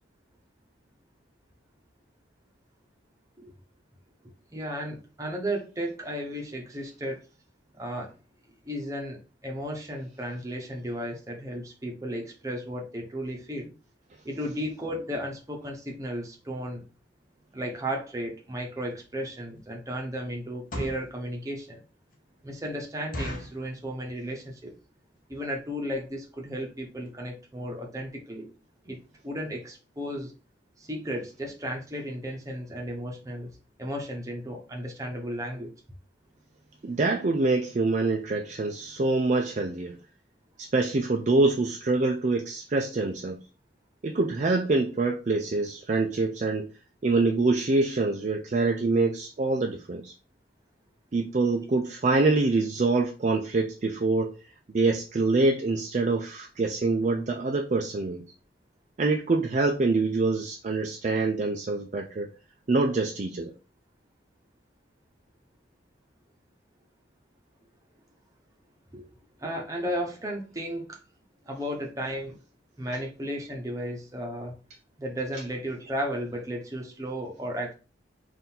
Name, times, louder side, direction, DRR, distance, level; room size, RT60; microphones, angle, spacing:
voice 1, 4.5-7.2 7.7-8.1 8.6-13.7 14.2-16.8 17.5-21.8 22.4-24.7 25.3-28.5 28.8-29.0 29.2-30.3 30.8-33.5 33.8-35.7 68.9-69.1 69.4-71.0 71.4-72.4 72.8-74.5 75.0-77.7, equal, 15° right, 0.9 m, -34 dB
sound 1, 18.9-19.0 19.5-19.8 20.5-21.1 21.7-21.8 22.1-22.2 22.5-22.6 23.1-23.6 24.2-24.5 24.8-24.9 25.1-25.4 25.9-26.0 26.2-26.4 26.8-26.9 27.1-27.2, equal, 45° left, 1.0 m, -36 dB
voice 2, 36.8-39.9 40.6-43.4 44.0-46.7 47.0-50.1 51.1-54.4 54.7-58.2 59.0-62.3 62.7-63.5, right 3 dB, 40° right, 0.4 m, -25 dB
3.7 x 2.6 x 4.2 m
head